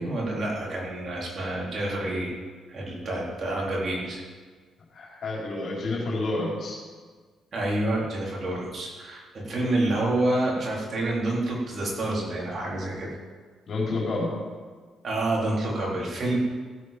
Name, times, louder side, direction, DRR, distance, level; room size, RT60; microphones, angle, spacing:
voice 1, 0.0-2.3 2.7-4.2 7.5-13.1 15.0-16.4, right 1 dB, 45° right, -4 dB, 4.2 m, -28 dB
voice 2, 4.9-6.8 13.7-14.3, left 2 dB, 55° left, -3 dB, 4.7 m, -29 dB
16.0 x 8.5 x 5.4 m, 1.5 s
cardioid pair, 90°, 0 cm